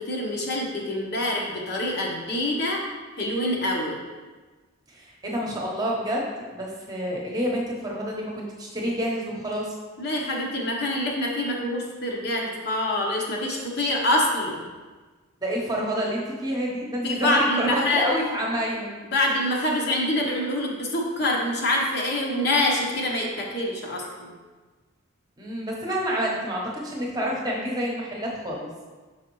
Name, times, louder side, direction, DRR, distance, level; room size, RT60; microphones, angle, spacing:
voice 1, 0.1-2.8 3.2-4.0 10.0-14.7 17.0-18.0 19.1-24.3, left 1 dB, 50° left, -2 dB, 0.9 m, -25 dB
voice 2, 4.9-9.7 15.4-18.9 25.4-28.7, equal, 20° right, -2 dB, 1.0 m, -28 dB
6.3 x 4.8 x 3.1 m, 1.3 s
head